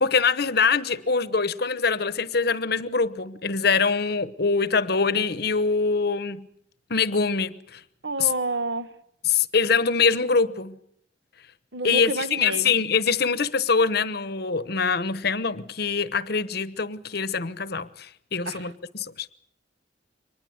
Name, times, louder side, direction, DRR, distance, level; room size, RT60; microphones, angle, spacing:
voice 1, 0.0-6.5 6.9-7.8 8.2-8.3 9.2-10.8 11.8-19.3, left 5 dB, 55° left, 1.1 m, -24 dB
voice 2, 8.0-9.0 11.7-12.7 18.5-18.6, right 2 dB, 60° right, 1.4 m, -29 dB
24.5 x 20.0 x 8.0 m
head